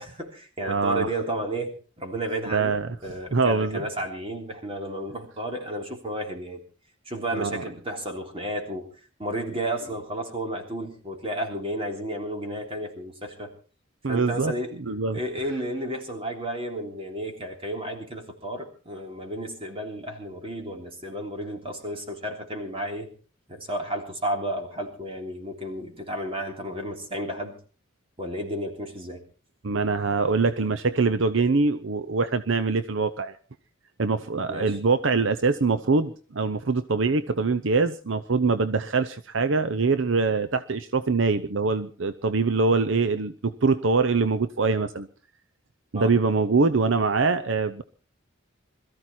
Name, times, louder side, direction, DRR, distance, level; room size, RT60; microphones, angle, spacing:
voice 1, 0.0-6.6 7.0-8.9 9.2-13.5 14.1-14.7 15.1-23.1 23.5-27.5 28.2-29.2 34.5-34.8 45.9-46.1, right 1 dB, 25° right, 3 dB, 3.4 m, -32 dB
voice 2, 0.7-1.1 2.5-3.8 7.3-7.6 14.0-14.5 14.8-15.2 29.6-33.4 34.0-45.1 45.9-47.8, right 4 dB, 65° right, 11 dB, 0.7 m, -24 dB
22.0 x 14.0 x 4.3 m, 0.38 s
head